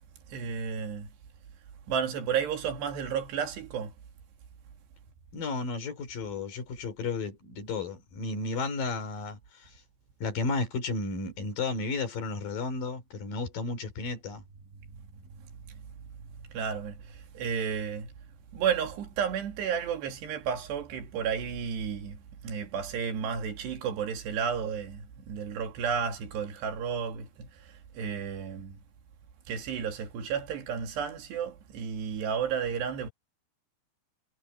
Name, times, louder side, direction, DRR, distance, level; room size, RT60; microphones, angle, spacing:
voice 1, 0.3-1.1 1.9-3.9 15.4-15.5 16.2-18.1 18.5-28.8 29.5-33.1, right 7 dB, 90° right, 4.5 m, -32 dB
voice 2, 5.3-9.7 10.2-14.4, left 3 dB, 55° left, 4.7 m, -33 dB
omnidirectional pair, 4.7 m